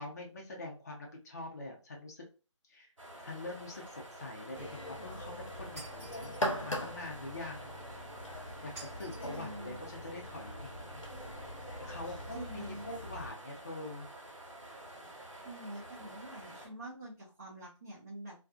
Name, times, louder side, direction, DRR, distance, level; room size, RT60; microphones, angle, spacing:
voice 1, 0.0-2.2 2.7-2.9 3.2-6.4 6.6-7.7 8.6-11.0 11.8-14.1, left 2 dB, 30° left, 0 dB, 0.5 m, -44 dB
sound 1, 3.0-16.7, right 1 dB, 85° right, 1.2 m, -50 dB
sound 2, 4.5-13.3, equal, 85° left, 0.8 m, -42 dB
Shatter, 5.8-6.5 8.8-9.5, right 3 dB, 5° right, 1.1 m, -50 dB
voice 2, 9.2-9.8 12.3-12.9 15.1-18.3, right 1 dB, 25° right, -6 dB, 0.6 m, -46 dB
2.5 x 2.2 x 2.3 m, 0.34 s
figure-of-eight pair, 160°, 16 cm